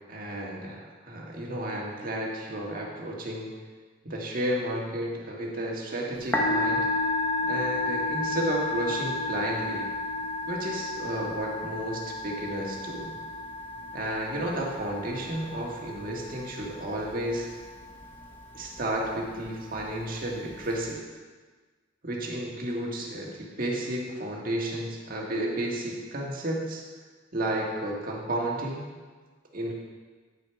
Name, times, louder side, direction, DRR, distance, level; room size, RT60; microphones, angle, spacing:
voice 1, 0.1-3.5 4.0-6.9 7.4-9.9 10.4-13.2 13.9-17.5 18.5-21.0 22.0-26.8 27.3-28.9 29.5-29.7, right 1 dB, 45° right, -2 dB, 1.6 m, -32 dB
Musical instrument, 6.2-20.9, left 2 dB, 10° left, 0.9 m, -32 dB
9.4 x 6.5 x 4.6 m, 1.4 s
head